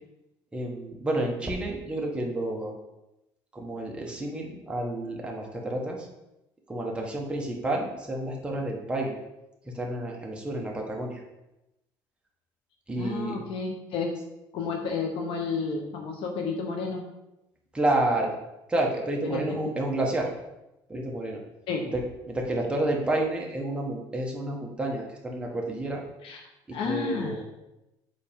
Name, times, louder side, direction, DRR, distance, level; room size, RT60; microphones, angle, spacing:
voice 1, 0.5-2.7 3.5-6.1 6.7-9.1 9.7-11.2 12.9-13.3 17.7-18.3 18.7-20.3 20.9-21.4 21.9-22.0 22.3-26.0 26.7-27.4, right 1 dB, 10° right, -1 dB, 1.3 m, -30 dB
voice 2, 13.0-14.1 14.5-17.0 19.2-19.6 21.7-21.9 26.2-26.4 26.7-27.4, left 4 dB, 70° left, 3 dB, 0.8 m, -31 dB
7.5 x 4.2 x 3.6 m, 0.93 s
cardioid pair, 125°, 9 cm